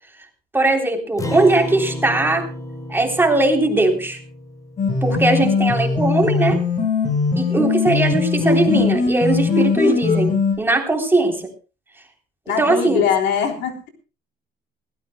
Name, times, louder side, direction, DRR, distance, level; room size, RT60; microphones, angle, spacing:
voice 1, 0.5-2.4 2.9-4.2 5.0-6.6 7.4-11.5 12.6-13.0, right 2 dB, 15° right, 2 dB, 3.5 m, -19 dB
Acoustic guitar, 1.2-5.9, left 1 dB, 20° left, 3.8 m, -32 dB
sound 1, 4.8-10.5, left 4 dB, 45° left, 7.9 m, -20 dB
voice 2, 12.5-13.9, left 8 dB, 85° left, 3 dB, 3.5 m, -22 dB
21.0 x 16.5 x 2.2 m, 0.33 s
cardioid pair, 110°, 17 cm